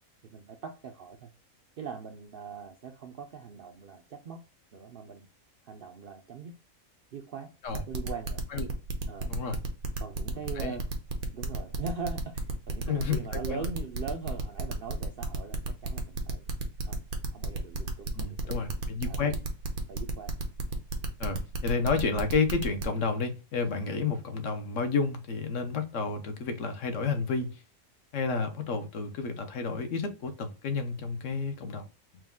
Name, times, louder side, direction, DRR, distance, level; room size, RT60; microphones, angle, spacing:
voice 1, 0.2-1.3 1.8-4.4 4.7-5.3 5.6-6.5 7.1-8.4 9.1-9.3 10.0-10.8 11.3-16.5 16.8-17.0 17.3-18.8 19.0-19.4 19.9-20.3, right 5 dB, 65° right, 0.5 m, -41 dB
sound 1, 7.7-22.8, right 5 dB, 90° right, 1.3 m, -34 dB
voice 2, 12.9-13.6 18.2-19.3 21.2-27.6 28.1-31.8, left 4 dB, 65° left, 1.0 m, -31 dB
4.6 x 2.2 x 3.5 m
omnidirectional pair, 1.5 m